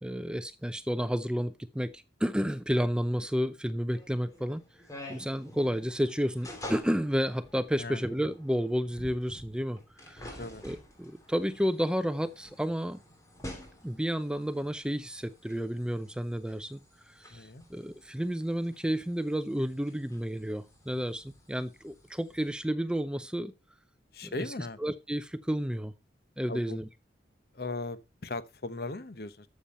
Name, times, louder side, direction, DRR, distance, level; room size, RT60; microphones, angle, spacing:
voice 1, 0.0-4.6 5.1-13.0 13.8-16.8 17.1-23.5 24.2-24.3 24.8-25.9 26.4-26.9, equal, 5° right, 0.4 m, -31 dB
sound 1, 3.9-22.6, left 1 dB, 20° left, 3.1 m, -49 dB
voice 2, 7.8-8.1 10.2-10.7 17.3-17.6 24.1-24.8 26.5-26.8 27.5-29.5, left 2 dB, 55° left, 1.0 m, -38 dB
13.0 x 7.0 x 4.2 m
head